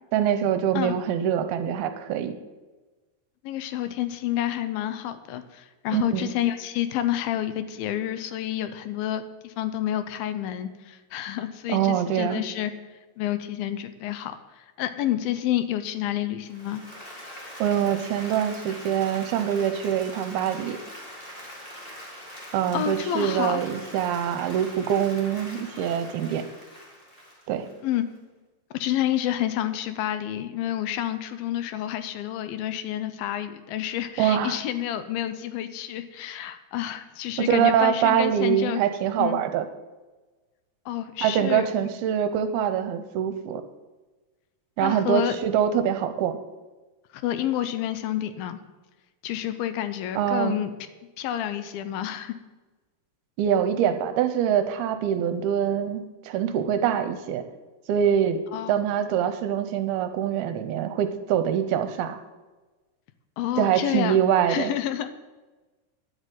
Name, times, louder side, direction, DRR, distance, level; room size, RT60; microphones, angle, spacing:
voice 1, 0.1-2.4 5.9-6.3 11.7-12.4 17.6-20.8 22.5-26.4 27.5-27.7 34.2-34.6 37.4-39.7 41.2-43.6 44.8-46.4 50.2-50.5 53.4-57.4 57.9-58.4 58.7-62.2 63.6-64.7, right 9 dB, 80° right, 9 dB, 2.6 m, -24 dB
voice 2, 3.4-12.7 13.2-16.8 22.7-23.6 27.8-28.1 28.7-38.8 39.2-39.4 40.9-41.7 44.8-45.4 47.1-48.6 49.2-50.8 51.2-52.3 58.5-58.8 63.4-64.2 64.5-65.1, left 12 dB, 75° left, 11 dB, 2.4 m, -29 dB
Applause, 16.4-28.2, equal, 15° left, 2.3 m, -42 dB
10.5 x 7.9 x 9.2 m, 1.2 s
omnidirectional pair, 4.6 m